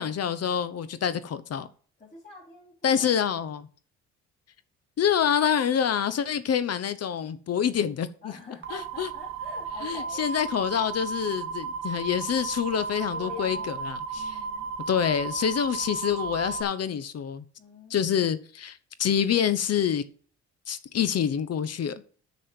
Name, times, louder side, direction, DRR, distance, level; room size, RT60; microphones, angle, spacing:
voice 1, 0.0-1.7 2.8-3.7 5.0-8.4 8.7-9.1 9.8-14.4 14.9-17.4 17.9-20.0 20.7-22.0, left 8 dB, 55° left, 1.0 m, -27 dB
voice 2, 2.0-3.2 8.2-10.3 13.1-13.8 14.1-14.7 17.6-18.1, left 4 dB, 25° left, 4.2 m, -45 dB
sound 1, 8.6-16.6, right 5 dB, 40° right, 1.3 m, -34 dB
6.6 x 6.6 x 7.6 m
cardioid pair, 90°, 30 cm